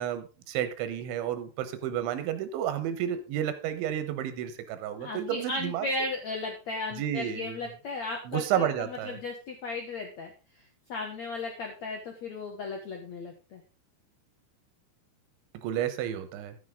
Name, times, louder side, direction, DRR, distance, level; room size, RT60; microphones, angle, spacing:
voice 1, 0.0-5.9 7.0-7.6 8.3-9.2 15.5-16.6, right 10 dB, 85° right, 11 dB, 3.5 m, -31 dB
voice 2, 5.0-13.6, left 3 dB, 70° left, 2 dB, 1.6 m, -36 dB
11.5 x 9.8 x 3.8 m, 0.32 s
omnidirectional pair, 5.3 m